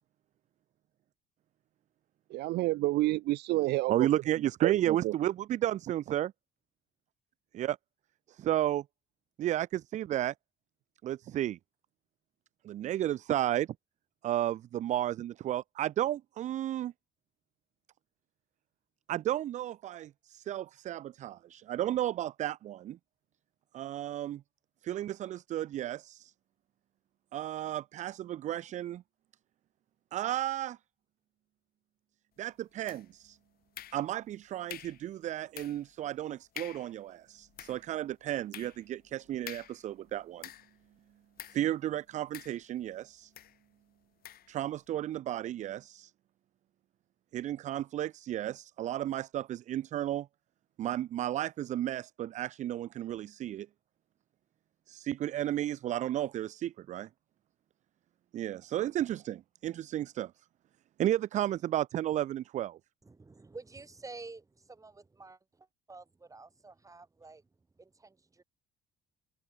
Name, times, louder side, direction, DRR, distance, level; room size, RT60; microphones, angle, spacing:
voice 1, 2.3-4.1 4.6-5.1, right 18 dB, 80° right, 0.8 m, -29 dB
voice 2, 3.9-6.3 7.5-7.8 8.3-8.8 9.4-10.3 11.0-11.6 12.7-13.7 14.2-16.9 19.1-23.0 23.7-24.4 24.8-26.3 27.3-29.0 30.1-30.8 32.4-33.4 33.9-40.5 41.5-43.3 44.5-46.1 47.3-50.3 50.8-53.7 54.9-57.1 58.3-60.3 61.0-62.8, right 12 dB, 45° right, 0.4 m, -33 dB
sound 1, 32.9-33.3 33.7-34.3 34.7-35.1 35.5-35.9 36.2-36.3 36.5-37.0 37.4-40.8 41.4-41.7 42.3-42.9 43.3-43.6 44.2-44.5, left 12 dB, 60° left, 2.0 m, -47 dB
voice 3, 63.0-67.5 67.8-68.4, right 3 dB, 20° right, 6.9 m, -50 dB
cardioid pair, 110°, 17 cm